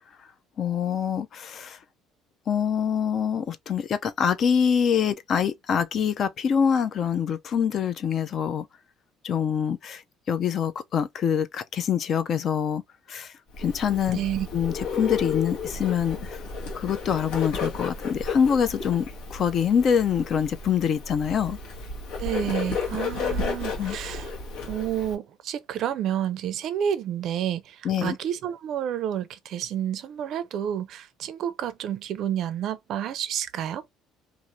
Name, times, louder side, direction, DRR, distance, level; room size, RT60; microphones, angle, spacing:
voice 1, 0.6-1.8 2.5-8.7 9.2-10.0 10.3-12.8 13.1-14.2 14.5-16.4 16.7-19.1 19.3-21.6 23.8-24.0 27.8-28.2, left 7 dB, 40° left, 0.4 m, -25 dB
Bird, 13.5-25.1, left 5 dB, 80° left, 1.1 m, -33 dB
voice 2, 14.1-14.5 22.2-24.3 24.7-33.9, right 10 dB, 50° right, 0.4 m, -30 dB
2.6 x 2.4 x 2.9 m
cardioid pair, 150°, 0 cm